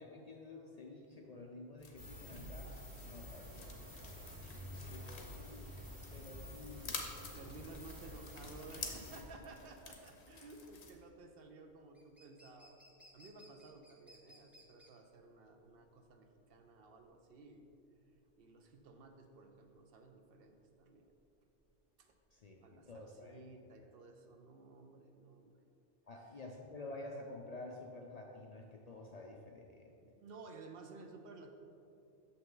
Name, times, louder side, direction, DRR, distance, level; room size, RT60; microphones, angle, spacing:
voice 1, 0.0-2.7 3.0-4.3 4.9-5.7 6.1-7.0 22.3-23.4 26.1-29.8, left 2 dB, 50° left, 0 dB, 0.5 m, -50 dB
sound 1, 1.8-10.9, left 4 dB, 75° left, 1.1 m, -50 dB
sound 2, 2.0-9.2, equal, 50° right, 1.6 m, -50 dB
voice 2, 4.5-5.4 7.3-12.8 13.1-17.7 18.4-21.1 22.0-22.1 22.6-25.5 26.2-26.4 30.0-31.5, right 3 dB, 65° right, 5 dB, 0.7 m, -55 dB
sound 3, 9.3-23.1, equal, ahead, 0.7 m, -66 dB
6.6 x 5.8 x 3.8 m, 2.7 s
omnidirectional pair, 1.1 m